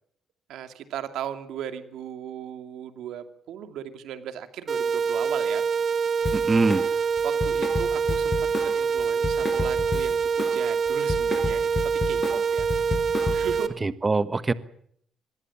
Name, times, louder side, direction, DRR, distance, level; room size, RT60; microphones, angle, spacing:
voice 1, 0.5-5.6 6.9-8.3 8.6-12.7 13.3-13.8, right 9 dB, 80° right, 9 dB, 2.6 m, -37 dB
sound 1, 4.7-13.7, right 6 dB, 45° right, 1.7 m, -25 dB
Drum kit, 6.2-6.9 7.2-10.6 10.9-13.6, left 4 dB, 30° left, 6.0 m, -31 dB
voice 2, 6.3-6.8 13.8-14.5, right 3 dB, 25° right, 14 dB, 1.3 m, -23 dB
24.5 x 21.0 x 7.3 m, 0.68 s
cardioid pair, 90°, 0 cm